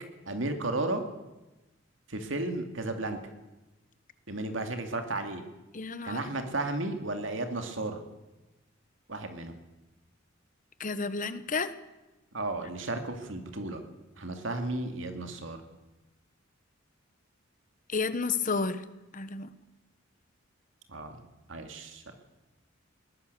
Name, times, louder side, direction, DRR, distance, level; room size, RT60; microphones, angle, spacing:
voice 1, 0.3-1.0 2.1-3.2 4.3-5.4 6.0-8.0 9.1-9.6 12.3-13.8 14.2-15.6 20.9-21.2 21.5-22.1, right 2 dB, 70° right, 6 dB, 2.4 m, -33 dB
voice 2, 5.7-6.2 10.8-11.7 17.9-18.8 19.1-19.5, left 4 dB, 40° left, 13 dB, 1.3 m, -31 dB
21.5 x 19.5 x 6.9 m, 1.0 s
head